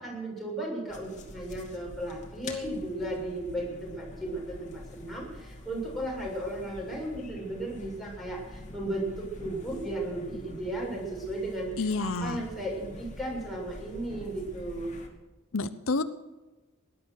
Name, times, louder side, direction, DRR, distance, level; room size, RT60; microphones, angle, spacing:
voice 1, 0.0-15.0, right 1 dB, ahead, -4 dB, 6.9 m, -35 dB
sound 1, 0.9-15.1, left 1 dB, 40° left, 2.6 m, -46 dB
voice 2, 11.8-12.4 15.5-16.0, left 3 dB, 80° left, 11 dB, 0.8 m, -29 dB
18.5 x 11.5 x 6.6 m, 1.1 s
head